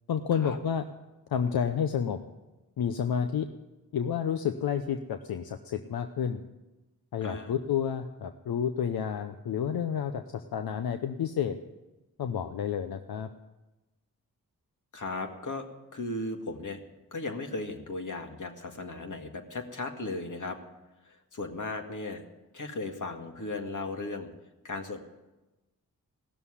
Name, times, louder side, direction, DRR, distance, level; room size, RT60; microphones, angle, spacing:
voice 1, 0.1-0.8 1.3-2.2 2.8-3.5 3.9-6.4 7.1-11.6 12.2-13.3, left 8 dB, 80° left, 8 dB, 0.7 m, -30 dB
voice 2, 7.2-7.5 14.9-15.7 15.9-16.8 17.1-20.6 21.0-22.2 22.5-24.3 24.6-25.0, left 2 dB, 55° left, 4 dB, 2.0 m, -36 dB
16.5 x 7.0 x 9.8 m, 1.1 s
cardioid pair, 40°, 36 cm